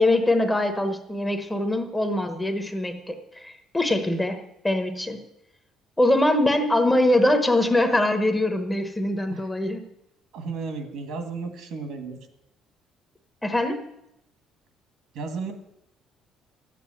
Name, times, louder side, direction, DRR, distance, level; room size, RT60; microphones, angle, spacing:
voice 1, 0.0-5.2 6.0-9.8 13.4-13.9, left 1 dB, 5° left, 6 dB, 0.9 m, -23 dB
voice 2, 10.3-12.2 15.1-15.5, right 4 dB, 60° right, 7 dB, 1.9 m, -33 dB
12.0 x 8.4 x 8.4 m, 0.84 s
cardioid pair, 170°, 0 cm